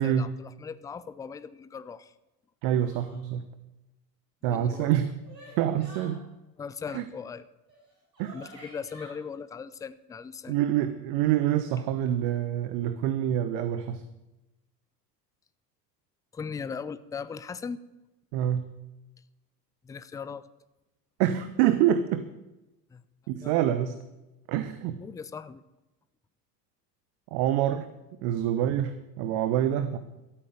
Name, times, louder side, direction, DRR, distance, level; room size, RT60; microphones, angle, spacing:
voice 1, 0.0-2.1 4.5-4.9 6.6-7.4 8.3-10.6 16.3-17.8 19.8-20.5 22.9-23.0 23.4-23.5 25.0-25.6, left 6 dB, 10° left, 15 dB, 0.4 m, -39 dB
voice 2, 2.6-3.5 4.4-5.1 5.6-6.2 6.9-7.0 8.2-8.4 10.5-14.0 18.3-18.7 21.2-22.2 23.3-23.9 24.5-25.0 27.3-27.9 28.2-30.0, right 11 dB, 50° right, 12 dB, 1.0 m, -26 dB
sound 1, 2.8-3.2 4.6-6.2 7.7-7.8 8.1-9.1, right 1 dB, 80° right, 5.3 m, -49 dB
13.0 x 9.0 x 7.5 m, 1.0 s
figure-of-eight pair, 70°, 49 cm